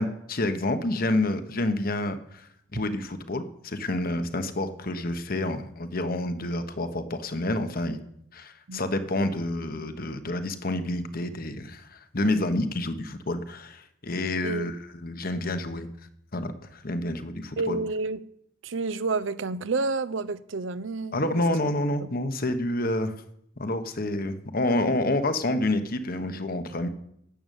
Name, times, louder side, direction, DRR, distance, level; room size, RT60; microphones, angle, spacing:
voice 1, 0.0-8.0 8.3-15.9 16.3-17.8 21.1-23.1 23.6-26.9, left 1 dB, 50° left, 1.3 m, -28 dB
voice 2, 17.6-18.2 18.6-21.2 22.0-22.1, right 3 dB, 75° right, 0.7 m, -29 dB
12.0 x 8.0 x 9.2 m
head